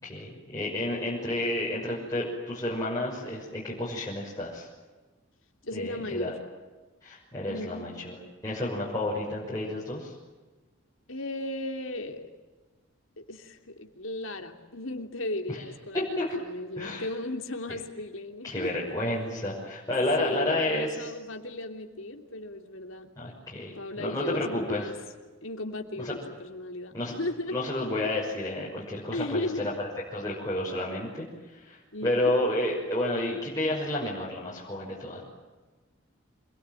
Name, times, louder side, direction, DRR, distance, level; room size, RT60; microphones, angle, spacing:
voice 1, 0.0-4.7 5.7-6.3 7.0-8.2 8.4-10.1 16.0-16.3 16.8-17.1 17.7-17.8 18.4-21.1 23.2-24.9 26.0-26.1 26.9-27.1 27.5-35.2, left 1 dB, 15° left, -6 dB, 6.1 m, -31 dB
voice 2, 5.6-6.4 7.5-7.9 9.0-9.4 11.1-12.3 13.2-18.9 20.2-23.1 23.7-25.0 25.4-27.8 29.1-29.8 31.9-32.3, left 1 dB, 80° left, 4 dB, 3.2 m, -36 dB
27.5 x 22.0 x 9.2 m, 1.2 s
head